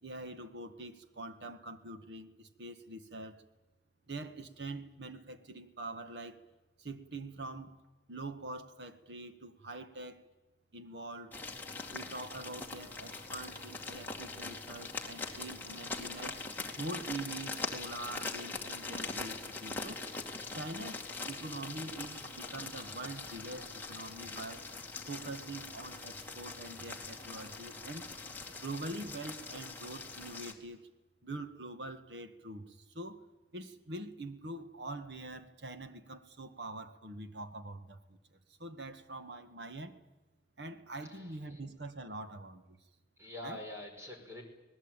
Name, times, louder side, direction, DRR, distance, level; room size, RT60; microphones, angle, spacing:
voice 1, 0.0-3.4 4.1-6.4 6.8-7.8 8.1-10.2 10.7-11.3 11.9-16.4 16.8-20.0 20.5-24.6 25.1-28.1 28.5-30.9 31.2-33.2 33.5-38.2 38.6-40.0 40.6-42.8 43.4-43.6, right 2 dB, 80° right, 10 dB, 1.7 m, -44 dB
sound 1, 11.3-30.5, left 3 dB, 10° left, 2.3 m, -42 dB
voice 2, 41.0-41.6 43.2-44.4, left 1 dB, 15° right, 2 dB, 5.1 m, -46 dB
25.5 x 19.5 x 9.1 m, 1.1 s
head